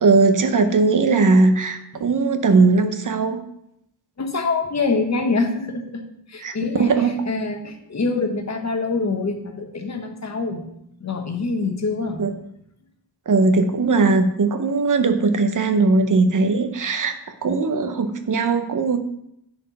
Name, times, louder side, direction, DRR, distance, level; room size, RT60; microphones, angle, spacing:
voice 1, 0.0-3.4 6.4-7.2 12.2-12.3 13.3-17.1 17.4-19.0, right 3 dB, 45° right, 8 dB, 0.8 m, -19 dB
voice 2, 4.2-6.0 6.3-10.6 11.0-12.2, left 3 dB, 40° left, 4 dB, 1.1 m, -25 dB
9.9 x 4.4 x 4.2 m, 0.78 s
wide cardioid pair, 130°, 44 cm